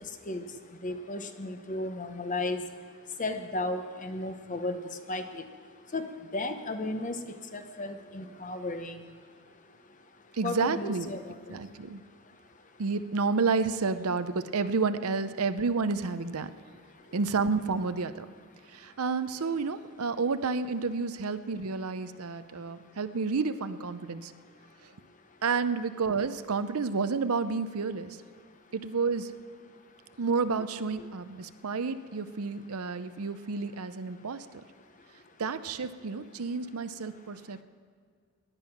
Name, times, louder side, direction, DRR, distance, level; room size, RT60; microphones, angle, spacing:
voice 1, 0.8-2.6 3.2-4.8 5.1-5.4 5.9-7.2 7.5-9.0 10.4-11.6, left 2 dB, 35° left, 8 dB, 0.9 m, -34 dB
voice 2, 10.3-11.1 11.5-12.0 12.8-16.5 17.1-18.3 18.7-24.3 25.4-28.2 28.7-29.3 30.2-34.5 35.4-37.6, right 4 dB, 80° right, 12 dB, 0.7 m, -30 dB
17.5 x 10.5 x 5.9 m, 2.1 s
head